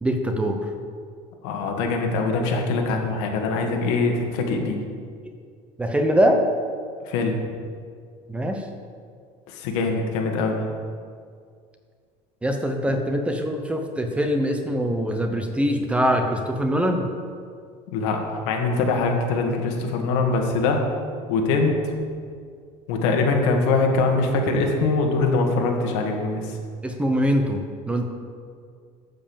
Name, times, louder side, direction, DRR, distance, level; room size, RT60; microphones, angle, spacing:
voice 1, 0.0-0.6 5.8-6.4 8.3-8.6 12.4-17.1 26.8-28.0, equal, 10° right, 4 dB, 0.8 m, -23 dB
voice 2, 1.4-4.8 7.1-7.4 9.5-10.6 12.9-13.0 17.9-20.8 21.3-21.7 22.9-26.6, left 3 dB, 90° left, 2 dB, 1.8 m, -23 dB
12.0 x 5.5 x 7.2 m, 2.1 s
cardioid pair, 160°, 14 cm